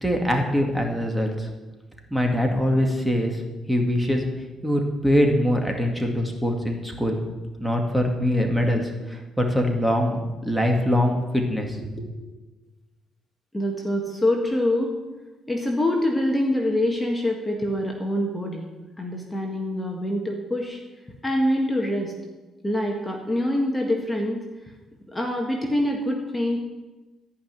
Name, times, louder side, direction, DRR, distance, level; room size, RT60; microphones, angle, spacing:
voice 1, 0.0-1.5 2.1-3.4 3.7-4.2 4.6-7.2 7.6-8.8 9.1-12.1, equal, 5° right, 2 dB, 2.2 m, -23 dB
voice 2, 13.5-14.9 15.5-18.7 19.0-20.8 21.2-22.1 22.6-24.4 25.1-26.6, left 1 dB, 15° left, 1 dB, 1.8 m, -25 dB
14.0 x 5.7 x 9.4 m, 1.2 s
cardioid pair, 90°, 0 cm